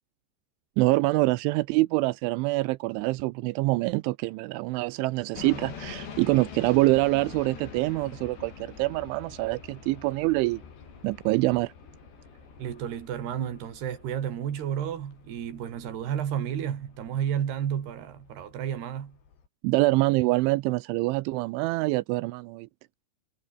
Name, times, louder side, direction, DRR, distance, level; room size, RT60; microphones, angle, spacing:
voice 1, 0.8-10.6 11.0-11.7 19.6-22.7, right 21 dB, 85° right, 3.1 m, -25 dB
sound 1, 5.3-19.5, left 6 dB, 65° left, 6.8 m, -46 dB
voice 2, 12.6-19.2, right 9 dB, 60° right, 4.5 m, -32 dB
omnidirectional pair, 5.5 m